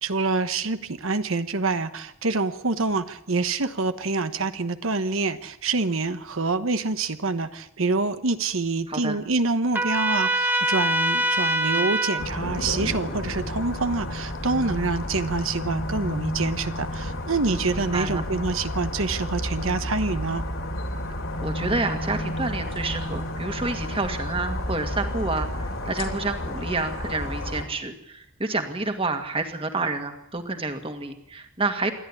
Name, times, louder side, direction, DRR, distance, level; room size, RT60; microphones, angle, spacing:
voice 1, 0.0-20.4, right 3 dB, 80° right, 10 dB, 1.1 m, -26 dB
voice 2, 8.9-9.2 17.8-18.2 21.4-31.9, right 3 dB, 25° right, 6 dB, 2.0 m, -29 dB
Trumpet, 9.7-12.2, right 1 dB, 10° right, 1.4 m, -23 dB
sound 1, 12.2-27.6, left 1 dB, 75° left, 3.3 m, -31 dB
28.0 x 11.5 x 9.9 m, 0.80 s
head